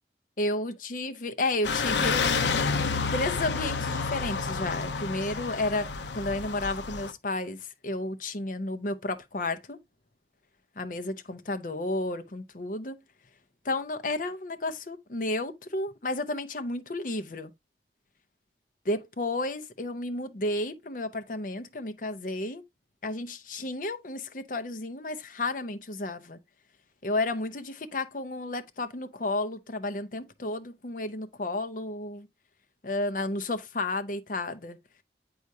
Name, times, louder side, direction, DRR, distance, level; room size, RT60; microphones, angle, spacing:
voice 1, 0.4-2.5 3.1-5.9 6.1-9.8 10.8-13.0 13.6-17.5 18.8-22.6 23.0-26.4 27.0-32.3 32.8-34.8, left 2 dB, 50° left, 0.7 m, -32 dB
sound 1, 1.6-7.1, left 5 dB, 85° left, 0.7 m, -29 dB
8.0 x 4.7 x 2.7 m
head